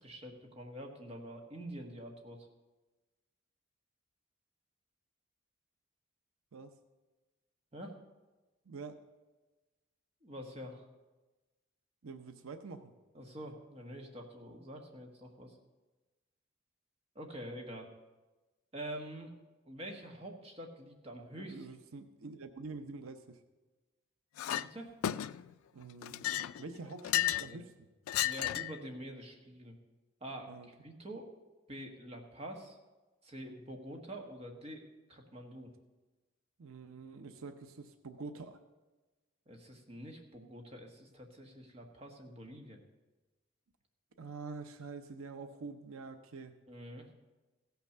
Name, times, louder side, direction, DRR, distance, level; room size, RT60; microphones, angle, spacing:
voice 1, 0.0-2.5 7.7-7.9 10.2-10.9 13.1-15.6 17.1-17.9 18.7-19.3 19.6-21.6 24.5-24.9 27.4-27.6 28.2-29.7 30.2-30.5 30.8-31.3 31.7-32.8 33.2-34.8 35.1-35.7 39.5-42.8 46.7-47.1, right 1 dB, 30° right, 2 dB, 1.4 m, -46 dB
voice 2, 8.7-9.0 12.0-13.0 21.3-23.4 25.7-26.3 26.6-27.9 30.5-30.7 36.6-38.6 44.2-46.6, right 4 dB, 90° right, 8 dB, 0.7 m, -46 dB
Chink clink, 24.4-24.7 25.0-25.5 26.0-27.5 28.1-28.8, left 13 dB, 90° left, 0.3 m, -33 dB
16.0 x 5.8 x 6.6 m, 1.2 s
head